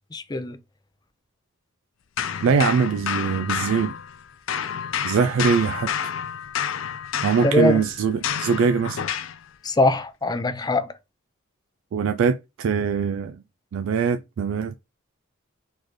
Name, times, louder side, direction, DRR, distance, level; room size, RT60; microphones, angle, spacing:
voice 1, 0.1-0.6 7.4-7.8 9.6-10.9, left 2 dB, 20° left, 0.5 m, -22 dB
sound 1, 2.2-4.2 4.5-9.4, left 8 dB, 70° left, 0.5 m, -29 dB
voice 2, 2.4-3.9 5.0-5.9 7.2-9.0 11.9-13.4 13.7-14.7, right 6 dB, 75° right, 0.3 m, -22 dB
4.2 x 3.2 x 3.0 m
head